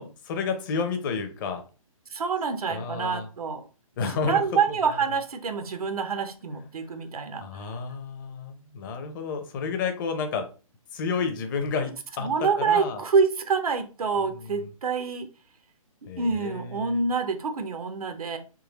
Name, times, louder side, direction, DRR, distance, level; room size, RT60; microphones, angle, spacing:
voice 1, 0.0-1.6 2.7-3.3 4.0-4.4 7.4-10.5 10.9-11.9 12.2-12.3 12.6-13.0 14.4-14.5 16.1-17.0, left 5 dB, 35° left, 7 dB, 0.7 m, -30 dB
voice 2, 2.1-3.7 4.1-7.7 12.2-15.3 16.2-18.4, right 5 dB, 85° right, 8 dB, 0.7 m, -27 dB
3.8 x 3.0 x 2.9 m, 0.35 s
hypercardioid pair, 145°, 18 cm